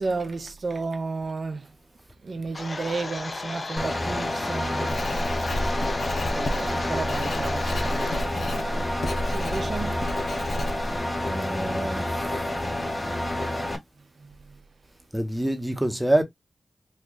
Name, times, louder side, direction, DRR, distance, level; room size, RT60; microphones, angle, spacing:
voice 1, 0.0-1.7 2.2-5.3 6.3-9.0 9.3-10.2 14.2-14.3, right 3 dB, 65° right, 0.6 m, -33 dB
Domestic sounds home sounds, 2.5-8.2, left 3 dB, 50° left, 0.5 m, -35 dB
sound 1, 3.8-13.8, left 1 dB, 25° left, 0.9 m, -29 dB
Writing, 4.9-11.0, left 1 dB, 90° left, 0.7 m, -32 dB
voice 2, 11.2-12.5 15.1-16.2, right 1 dB, 10° right, 0.9 m, -26 dB
3.1 x 2.4 x 3.7 m
cardioid pair, 65°, 0 cm